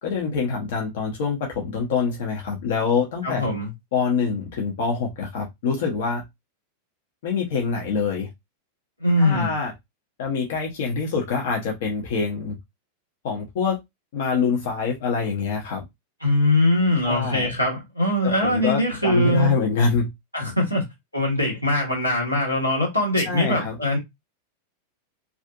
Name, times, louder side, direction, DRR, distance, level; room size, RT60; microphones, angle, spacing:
voice 1, 0.0-3.4 3.9-6.2 7.2-8.3 9.2-9.7 10.2-12.6 13.2-13.8 14.1-15.8 17.0-17.5 18.2-20.1 23.3-23.8, left 5 dB, 55° left, 0.7 m, -25 dB
voice 2, 3.2-3.7 9.0-9.5 16.2-19.5 20.3-20.8 21.1-24.0, left 1 dB, 90° left, 1.2 m, -22 dB
2.5 x 2.4 x 2.4 m
figure-of-eight pair, 90°, 0 cm